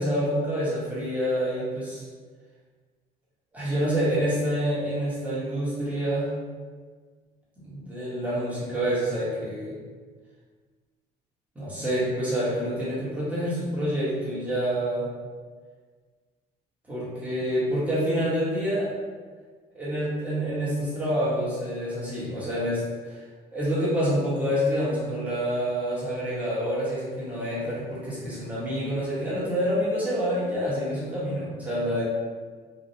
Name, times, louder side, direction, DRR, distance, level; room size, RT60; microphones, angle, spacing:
voice 1, 0.0-2.0 3.5-6.4 7.6-9.8 11.5-15.1 16.9-18.9 19.7-23.2 23.5-32.0, equal, 10° right, -9 dB, 1.3 m, -27 dB
3.1 x 2.5 x 2.7 m, 1.5 s
cardioid pair, 110°, 17 cm